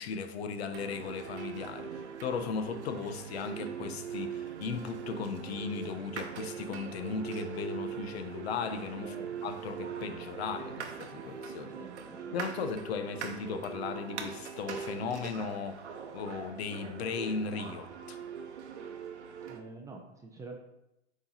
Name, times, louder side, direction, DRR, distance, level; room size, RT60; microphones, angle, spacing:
voice 1, 0.0-9.1 9.4-11.7 12.3-15.8 16.1-18.2, left 5 dB, 65° left, 0.8 m, -37 dB
sound 1, 0.7-19.6, right 7 dB, 80° right, 0.9 m, -41 dB
voice 2, 11.7-12.4 19.5-20.6, right 3 dB, 10° right, 0.5 m, -47 dB
7.9 x 3.1 x 3.9 m
hypercardioid pair, 125°, 34 cm